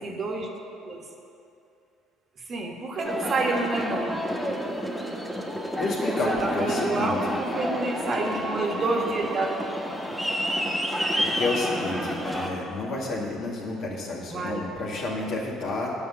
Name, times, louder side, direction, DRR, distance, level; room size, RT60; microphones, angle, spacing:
voice 1, 0.0-0.5 0.9-1.0 2.5-4.2 6.2-9.5 9.8-9.9 11.9-12.2 14.3-14.6, right 2 dB, 45° right, 1 dB, 1.4 m, -29 dB
Aircraft, 3.0-12.5, equal, ahead, 1.3 m, -29 dB
voice 2, 5.8-7.1 11.2-15.9, left 2 dB, 60° left, -3 dB, 1.9 m, -30 dB
8.5 x 5.8 x 6.6 m, 2.6 s
hypercardioid pair, 60°, 0 cm